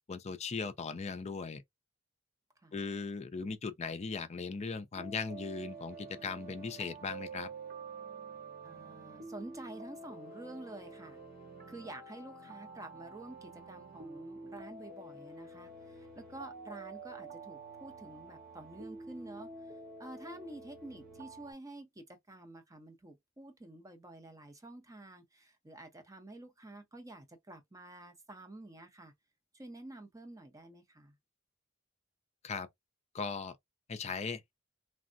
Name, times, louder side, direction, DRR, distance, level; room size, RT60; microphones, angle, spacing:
voice 1, 0.1-1.6 2.7-7.5 32.4-32.7 33.1-33.6 33.9-34.5, left 4 dB, 30° left, 0.4 m, -38 dB
sound 1, 4.9-21.5, right 3 dB, 50° right, 0.9 m, -48 dB
voice 2, 8.6-11.2 11.7-19.5 20.0-29.1 29.5-31.1, right 2 dB, 15° right, 0.6 m, -49 dB
3.3 x 2.0 x 2.4 m
head